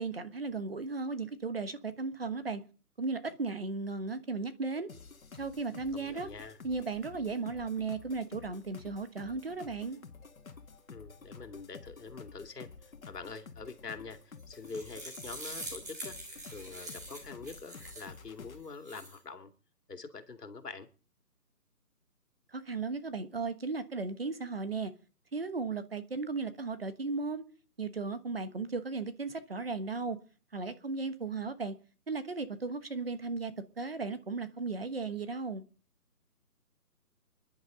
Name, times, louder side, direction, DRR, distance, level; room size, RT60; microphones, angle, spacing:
voice 1, 0.0-2.6 3.0-4.9 5.4-6.3 6.6-10.0 22.5-24.9 25.3-27.4 27.8-30.2 30.5-31.7 32.1-35.6, right 4 dB, 40° right, 1.3 m, -36 dB
sound 1, 4.9-18.6, left 5 dB, 60° left, 2.0 m, -51 dB
voice 2, 5.9-6.6 10.9-16.2 16.5-19.5 19.9-20.9, left 4 dB, 75° left, 2.4 m, -45 dB
sound 2, 14.4-18.2 18.6-19.2, right 1 dB, 10° right, 1.4 m, -44 dB
26.5 x 11.0 x 3.8 m
hypercardioid pair, 175°, 48 cm